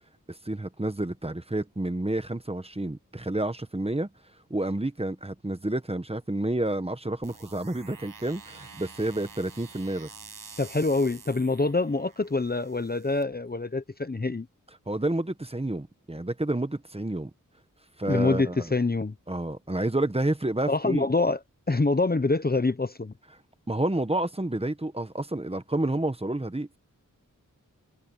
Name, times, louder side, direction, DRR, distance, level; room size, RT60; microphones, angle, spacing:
voice 1, 0.3-4.1 4.5-10.1 14.9-17.3 18.0-18.7 19.3-21.1 23.7-26.8, right 1 dB, 20° right, 1.3 m, -29 dB
sound 1, 7.2-13.2, right 4 dB, 90° right, 7.3 m, -48 dB
voice 2, 10.6-14.5 18.1-19.1 20.7-21.4 21.7-23.1, left 3 dB, 30° left, 0.9 m, -25 dB
wide cardioid pair, 75°, 32 cm